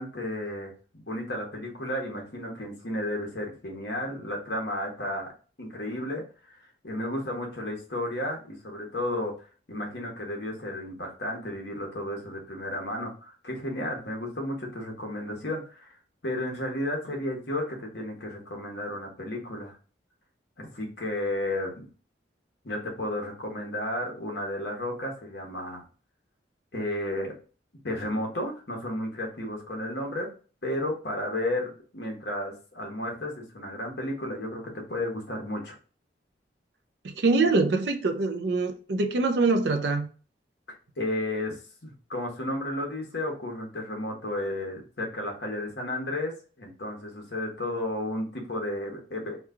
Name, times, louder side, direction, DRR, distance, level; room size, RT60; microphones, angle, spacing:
voice 1, 0.0-5.3 5.6-6.6 6.8-9.3 9.7-16.0 16.2-19.8 20.6-21.9 22.6-25.8 26.7-27.3 27.8-30.3 30.6-35.7 41.0-49.4, left 1 dB, 60° left, 1.0 m, -33 dB
voice 2, 37.0-40.1, right 3 dB, 65° right, 0.5 m, -24 dB
3.0 x 2.2 x 3.6 m
head